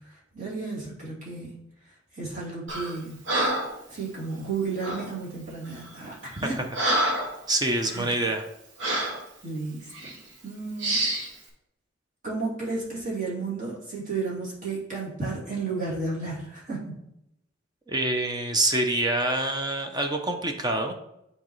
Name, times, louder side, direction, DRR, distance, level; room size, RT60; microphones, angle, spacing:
voice 1, 0.1-1.5 2.1-3.2 3.9-6.6 7.8-8.1 9.4-10.1 10.4-11.2 12.2-16.9, right 3 dB, 40° right, -6 dB, 2.8 m, -33 dB
Breathing, 2.7-2.9 3.3-3.8 4.8-5.1 5.8-5.9 6.3-7.4 7.8-8.0 8.8-9.2 9.9-10.1 10.8-11.3, right 1 dB, 70° right, 1.3 m, -27 dB
voice 2, 7.5-8.5 17.9-20.9, right 2 dB, 20° right, 4 dB, 0.6 m, -26 dB
9.7 x 4.0 x 3.1 m, 0.81 s
head